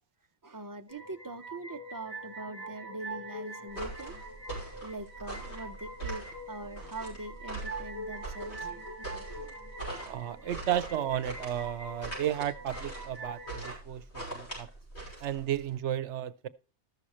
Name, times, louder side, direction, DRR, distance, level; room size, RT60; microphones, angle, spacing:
voice 1, 0.4-4.2 4.5-9.6 10.4-10.5, right 2 dB, 25° right, 0.5 m, -43 dB
sound 1, 0.9-13.7, right 2 dB, 10° left, 3.3 m, -44 dB
sound 2, 3.7-15.7, right 2 dB, 65° left, 6.5 m, -42 dB
voice 2, 10.1-14.7 15.2-16.5, right 11 dB, 75° right, 0.9 m, -33 dB
14.0 x 6.4 x 4.2 m
omnidirectional pair, 1.2 m